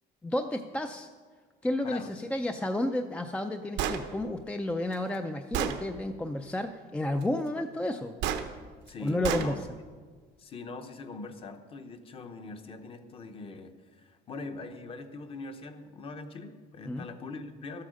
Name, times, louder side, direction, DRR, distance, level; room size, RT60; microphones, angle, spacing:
voice 1, 0.2-1.1 1.6-8.2 9.0-9.6 16.8-17.1, left 1 dB, 5° left, 6 dB, 0.4 m, -31 dB
Gunshot gunfire, 3.8-4.0 4.9-5.0 5.5-5.8 8.2-8.4 9.2-9.5, right 9 dB, 85° right, 1.0 m, -29 dB
voice 2, 8.9-9.6 10.4-17.8, left 3 dB, 30° left, 8 dB, 0.9 m, -42 dB
13.0 x 8.5 x 6.3 m, 1.5 s
cardioid pair, 165°, 18 cm